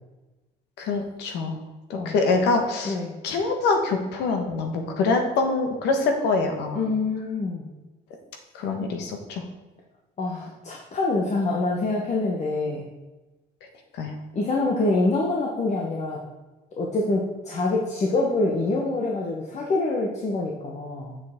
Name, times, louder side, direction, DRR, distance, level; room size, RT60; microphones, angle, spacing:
voice 1, 0.8-1.6 1.9-3.0 3.2-6.8 8.5-9.4 13.9-14.1, left 3 dB, 85° left, 4 dB, 1.3 m, -24 dB
voice 2, 2.8-3.2 6.7-7.7 10.2-12.8 14.3-16.2 16.8-21.2, left 2 dB, 45° left, -1 dB, 1.1 m, -25 dB
7.4 x 6.7 x 3.6 m, 1.1 s
cardioid pair, 110°, 17 cm